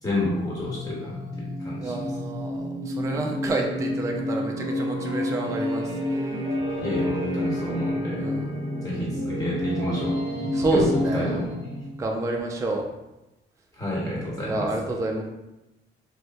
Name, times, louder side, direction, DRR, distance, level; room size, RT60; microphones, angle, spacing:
voice 1, 0.0-2.1 6.8-8.3 8.8-11.5 13.7-14.7, left 1 dB, 20° left, -6 dB, 1.3 m, -29 dB
sound 1, 0.6-12.0, left 1 dB, 35° right, 1.1 m, -29 dB
voice 2, 1.8-5.9 8.2-8.4 10.5-11.4 12.0-12.9 14.5-15.2, right 2 dB, 15° right, 1 dB, 0.3 m, -28 dB
3.1 x 2.1 x 2.6 m, 0.98 s
cardioid pair, 90°, 20 cm